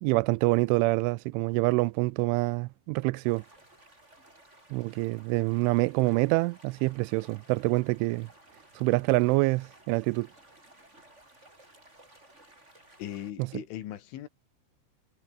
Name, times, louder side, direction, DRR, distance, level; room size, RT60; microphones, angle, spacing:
voice 1, 0.0-3.4 4.7-8.3 8.8-10.3 13.4-13.5, right 23 dB, 90° right, 3.1 m, -26 dB
sound 1, 3.2-13.3, right 1 dB, 15° right, 7.1 m, -57 dB
voice 2, 13.0-14.3, left 12 dB, 85° left, 4.6 m, -39 dB
omnidirectional pair, 5.4 m